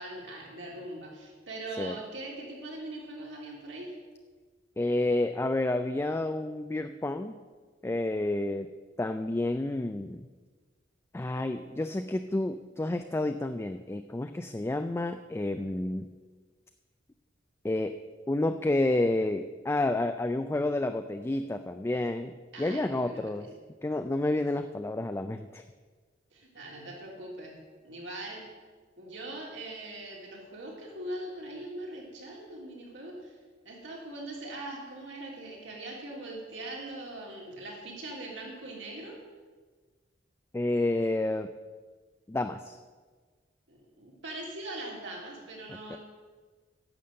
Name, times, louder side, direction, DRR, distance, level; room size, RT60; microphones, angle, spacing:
voice 1, 0.0-3.9 22.5-23.3 26.3-27.5 27.8-28.4 29.0-33.4 33.6-39.2 43.7-46.0, right 1 dB, 75° right, -2 dB, 3.3 m, -41 dB
voice 2, 4.8-7.3 7.8-10.3 11.1-16.1 17.6-18.0 18.3-23.5 23.8-25.6 40.5-41.5 42.3-42.8 45.7-46.0, left 2 dB, 15° left, 8 dB, 0.3 m, -30 dB
11.0 x 6.9 x 7.6 m, 1.4 s
head